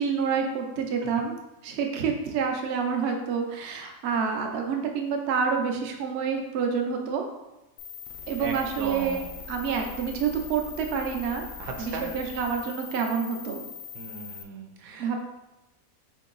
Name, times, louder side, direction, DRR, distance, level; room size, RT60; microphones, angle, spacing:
voice 1, 0.0-1.4 1.6-7.2 8.3-11.4 11.8-13.6 15.0-15.2, right 6 dB, 60° right, 2 dB, 0.8 m, -28 dB
sound 1, 7.8-14.4, left 6 dB, 85° left, 1.1 m, -41 dB
voice 2, 8.4-9.3 11.6-12.1 13.9-15.1, right 4 dB, 90° right, 2 dB, 1.1 m, -37 dB
4.5 x 2.8 x 3.8 m, 0.97 s
omnidirectional pair, 1.5 m